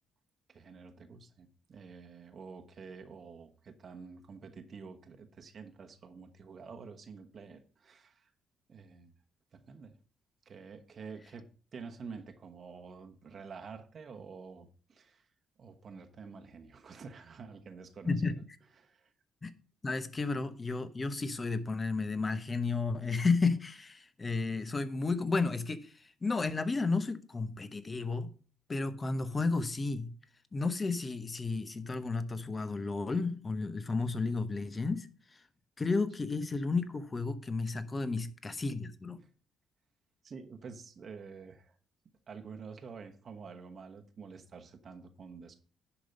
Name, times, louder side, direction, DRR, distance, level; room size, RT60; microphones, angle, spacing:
voice 1, 0.5-8.3 8.7-9.1 9.5-10.0 10.4-15.3 15.6-18.4 18.7-19.1 39.2-39.3 40.2-41.8 42.3-45.6, right 5 dB, 50° right, 1.1 m, -48 dB
voice 2, 19.8-25.9 26.2-28.3 28.7-30.1 30.5-35.1 35.8-39.2, left 3 dB, 30° left, 1.0 m, -32 dB
10.0 x 5.3 x 5.3 m
cardioid pair, 90°, 0 cm